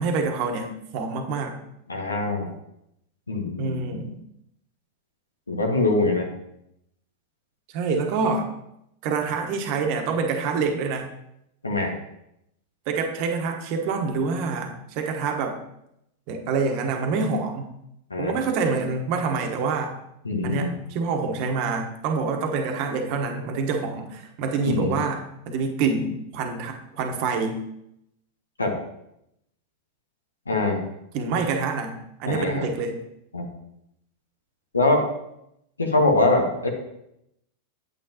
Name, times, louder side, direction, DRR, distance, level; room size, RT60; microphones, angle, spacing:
voice 1, 0.0-1.6 3.6-4.2 7.7-8.5 9.0-11.1 12.9-15.6 16.3-17.7 18.2-19.9 20.4-25.2 25.5-27.6 31.1-31.9 32.2-33.0, right 4 dB, 50° right, 3 dB, 1.3 m, -26 dB
voice 2, 1.9-2.5 3.3-3.8 5.5-6.3 11.6-11.9 18.1-18.4 20.2-20.7 24.7-25.0 28.6-28.7 30.5-30.8 32.3-32.6 33.3-33.5 34.7-35.1 35.8-36.7, left 2 dB, 90° left, 2 dB, 1.3 m, -23 dB
8.7 x 8.5 x 3.0 m, 0.80 s
hypercardioid pair, 95°, 0 cm